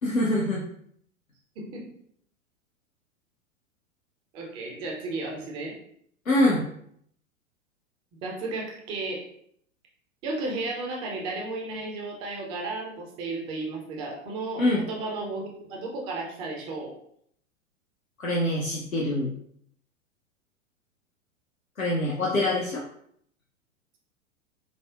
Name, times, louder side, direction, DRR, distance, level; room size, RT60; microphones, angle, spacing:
voice 1, 0.0-0.6 6.3-6.6 14.6-14.8 18.2-19.3 21.8-22.8, left 1 dB, 85° left, -3 dB, 0.7 m, -24 dB
voice 2, 1.6-1.9 4.3-5.8 8.2-9.3 10.2-16.9, right 2 dB, 15° right, -1 dB, 0.4 m, -34 dB
4.9 x 2.1 x 2.3 m, 0.66 s
figure-of-eight pair, 100°, 40 cm